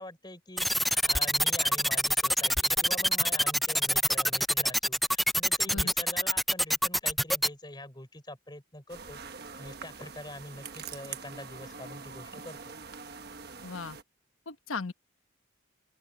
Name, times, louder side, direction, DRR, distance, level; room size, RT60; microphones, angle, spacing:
voice 1, 0.0-9.2 9.6-12.7, left 1 dB, 20° left, 4.4 m, -44 dB
sound 1, 0.6-7.5, equal, ahead, 0.4 m, -25 dB
sound 2, 8.9-14.0, right 5 dB, 50° right, 1.3 m, -44 dB
voice 2, 13.6-14.0 14.5-14.9, left 4 dB, 85° left, 1.2 m, -36 dB
open air
head